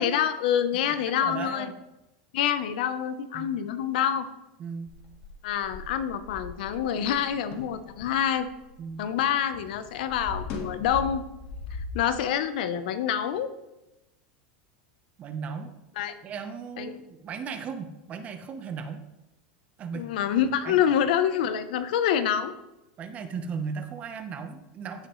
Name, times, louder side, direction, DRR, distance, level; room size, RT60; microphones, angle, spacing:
voice 1, 0.0-1.7 2.3-4.3 5.4-8.5 9.0-11.2 11.9-13.5 16.0-16.1 16.8-16.9 19.9-22.5, left 9 dB, 75° left, 11 dB, 0.9 m, -26 dB
voice 2, 0.8-1.7 3.3-3.6 4.6-4.9 8.8-9.1 15.2-15.7 16.2-19.0 19.8-20.1 20.6-20.8 23.0-25.1, right 5 dB, 30° right, 8 dB, 1.0 m, -36 dB
sound 1, 4.9-9.3 9.5-12.1, left 3 dB, 45° left, 1.8 m, -40 dB
15.5 x 6.6 x 3.2 m, 0.96 s
supercardioid pair, 145°, 5 cm